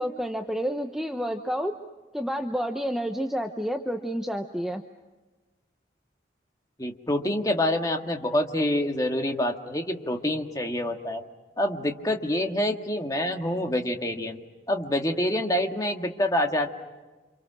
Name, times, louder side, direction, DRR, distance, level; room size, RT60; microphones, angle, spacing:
voice 1, 0.0-1.7 2.1-4.8, equal, ahead, 4 dB, 0.9 m, -29 dB
voice 2, 6.8-11.2 11.6-14.4 14.7-16.7, left 1 dB, 20° left, 3 dB, 1.8 m, -26 dB
29.5 x 27.0 x 6.3 m, 1.2 s
head